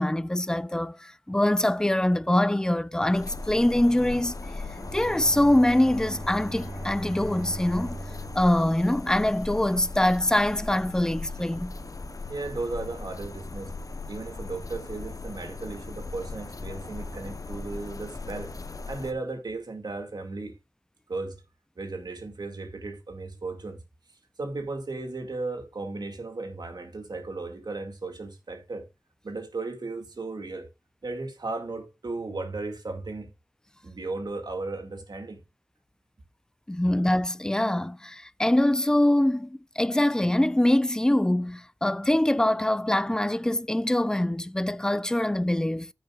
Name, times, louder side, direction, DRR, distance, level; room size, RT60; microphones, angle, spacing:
voice 1, 0.0-4.3 4.9-8.0 8.3-11.7 36.7-45.9, left 1 dB, 10° left, 0.4 m, -24 dB
sound 1, 3.1-19.1, left 3 dB, 55° left, 0.8 m, -38 dB
Bowed string instrument, 4.7-9.7, right 2 dB, 30° right, 5.5 m, -41 dB
voice 2, 12.3-13.7 14.1-18.5 18.9-20.5 21.1-21.4 21.8-23.8 24.4-28.9 29.2-30.7 31.0-33.3 33.8-35.4, right 3 dB, 75° right, 2.2 m, -35 dB
14.5 x 6.7 x 2.4 m
wide cardioid pair, 75°, 7 cm